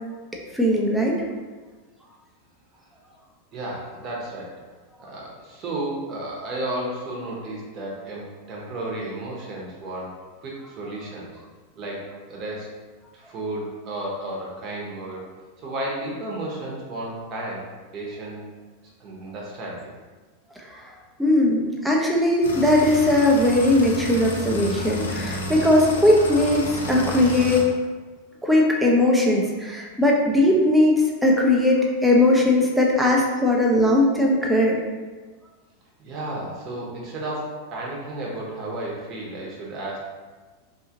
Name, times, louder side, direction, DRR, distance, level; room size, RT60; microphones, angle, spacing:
voice 1, 0.5-1.2 5.0-5.1 20.7-20.9 21.2-27.7 28.4-34.8, left 1 dB, 5° right, -2 dB, 0.6 m, -19 dB
voice 2, 3.5-4.5 5.1-11.3 11.7-12.7 13.1-15.3 15.6-18.4 19.0-19.9 36.0-40.1, right 1 dB, 40° right, -3 dB, 0.9 m, -33 dB
sound 1, 22.4-27.6, left 2 dB, 90° left, 0.5 m, -31 dB
2.7 x 2.4 x 2.8 m, 1.3 s
hypercardioid pair, 110°, 0 cm